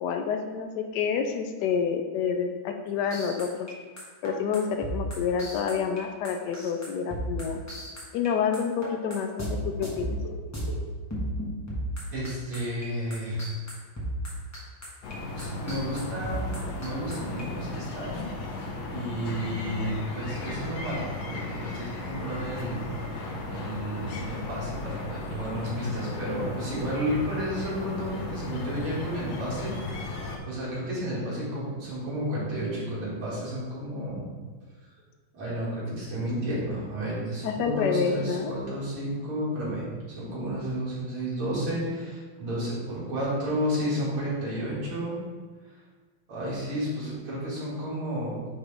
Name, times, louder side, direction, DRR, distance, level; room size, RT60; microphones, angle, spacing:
voice 1, 0.0-3.7 4.2-7.6 8.1-10.2 37.4-38.5, left 6 dB, 85° left, 5 dB, 0.9 m, -28 dB
sound 1, 3.1-8.3 8.5-9.5 9.8-10.7 11.1-12.9 13.1-17.4, right 1 dB, 10° left, 1.1 m, -35 dB
voice 2, 12.1-13.5 15.3-16.4 16.7-18.3 18.9-22.9 23.4-30.2 30.4-34.3 35.3-39.8 40.2-45.2 45.7-45.8 46.3-48.5, equal, 80° right, -8 dB, 3.0 m, -32 dB
sound 2, 15.0-30.4, left 2 dB, 60° left, 1.1 m, -35 dB
8.9 x 3.6 x 3.4 m, 1.4 s
omnidirectional pair, 2.3 m